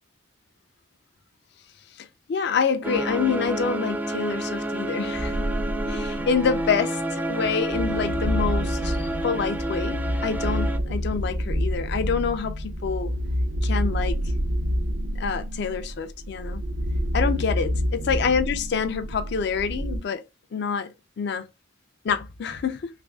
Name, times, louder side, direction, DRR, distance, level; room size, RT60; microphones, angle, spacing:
voice 1, 2.0-5.4 5.9-13.1 13.6-14.2 15.2-16.6 17.1-17.7 18.1-20.2 20.5-20.9 21.2-21.5 22.0-22.9, left 6 dB, 60° left, 0.4 m, -27 dB
sound 1, 2.8-10.8, right 1 dB, 10° right, 0.3 m, -29 dB
sound 2, 5.1-6.8 7.4-20.0, equal, 70° right, 0.6 m, -28 dB
3.0 x 2.5 x 3.4 m
head